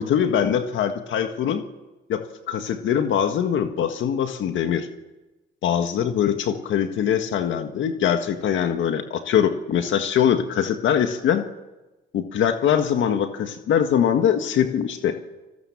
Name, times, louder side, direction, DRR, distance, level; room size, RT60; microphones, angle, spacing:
voice 1, 0.0-1.6 2.1-4.9 5.6-11.4 12.1-15.2, left 9 dB, 75° left, 6 dB, 1.7 m, -22 dB
30.0 x 20.0 x 7.3 m, 1.1 s
cardioid pair, 90°, 20 cm